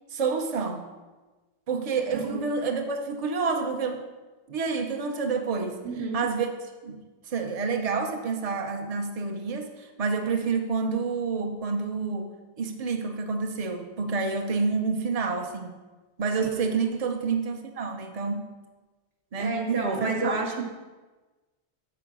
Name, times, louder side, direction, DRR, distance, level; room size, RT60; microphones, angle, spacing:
voice 1, 0.1-0.8 1.7-4.0 4.5-5.8 6.1-6.5 6.8-7.0 7.3-12.3 12.6-15.8 16.2-18.5 19.3-20.6, right 4 dB, 40° right, 4 dB, 0.7 m, -28 dB
voice 2, 2.1-2.4 5.8-6.3 16.4-16.6 19.4-20.5, right 3 dB, 65° right, 2 dB, 1.3 m, -30 dB
6.9 x 4.9 x 6.0 m, 1.2 s
omnidirectional pair, 1.2 m